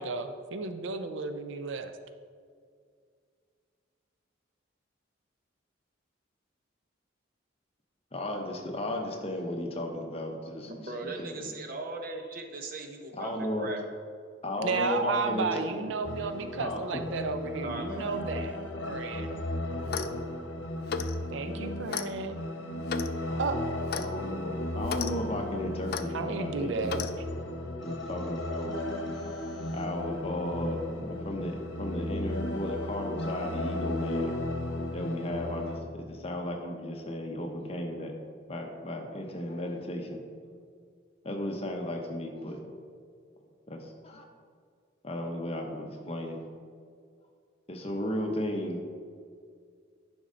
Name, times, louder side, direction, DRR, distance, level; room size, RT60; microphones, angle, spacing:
voice 1, 0.0-1.9 14.6-18.6 18.9-19.3 21.3-22.4 23.4-23.6 26.1-27.0, right 4 dB, 75° right, 8 dB, 0.5 m, -33 dB
voice 2, 8.1-11.5 13.2-13.7 14.4-15.9 16.6-17.0 23.9-27.0 27.8-28.7 29.7-34.3 34.9-38.1 38.5-40.2 41.2-42.6 43.7-44.2 45.0-46.4 47.7-48.8, left 1 dB, 30° left, 2 dB, 0.8 m, -35 dB
voice 3, 10.7-13.8 17.6-18.0, right 2 dB, 45° right, 4 dB, 0.8 m, -38 dB
sound 1, 16.0-35.8, left 1 dB, 75° left, 0.9 m, -35 dB
Clock, 19.8-20.2 20.9-21.2 21.9-22.1 22.9-23.1 23.9-24.1 24.8-25.1 25.9-26.1 26.9-27.1, left 7 dB, 50° left, 0.3 m, -34 dB
sound 2, 27.8-33.6, right 1 dB, ahead, 1.2 m, -54 dB
9.9 x 5.4 x 3.8 m, 2.1 s
head